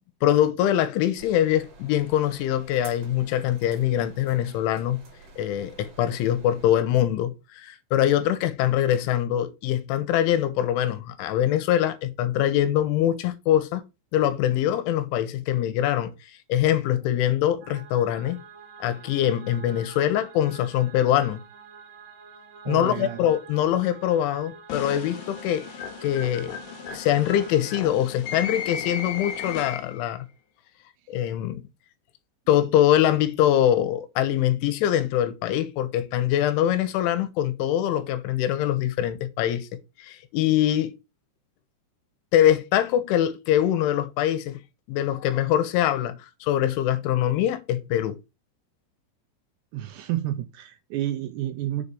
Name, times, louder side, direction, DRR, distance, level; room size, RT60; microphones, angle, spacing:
voice 1, 0.2-5.0 5.4-13.8 14.1-16.1 16.5-18.4 18.8-21.4 22.7-25.7 26.0-26.6 26.9-30.3 31.1-31.6 32.5-39.7 40.0-40.9 42.3-44.6 44.9-48.2, left 11 dB, 80° left, 3.1 m, -23 dB
sound 1, 1.2-6.7, right 3 dB, 35° right, 3.5 m, -50 dB
sound 2, 17.6-27.8, right 5 dB, 65° right, 3.4 m, -47 dB
voice 2, 22.7-23.2 49.7-51.9, right 13 dB, 85° right, 2.5 m, -30 dB
sound 3, 24.7-30.1, left 7 dB, 65° left, 2.7 m, -35 dB
7.3 x 4.1 x 6.7 m
omnidirectional pair, 5.6 m